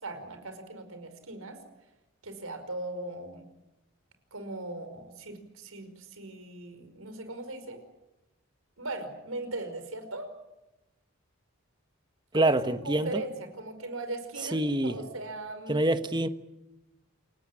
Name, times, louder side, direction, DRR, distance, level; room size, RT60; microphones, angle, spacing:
voice 1, 0.0-1.6 2.2-3.5 4.3-7.8 8.8-10.3 12.3-12.6 12.8-14.6 14.8-15.8, right 2 dB, 85° right, 5.3 m, -38 dB
voice 2, 12.3-13.2 14.5-15.0 15.7-16.3, right 1 dB, 20° right, 1.3 m, -26 dB
28.5 x 17.5 x 9.9 m
head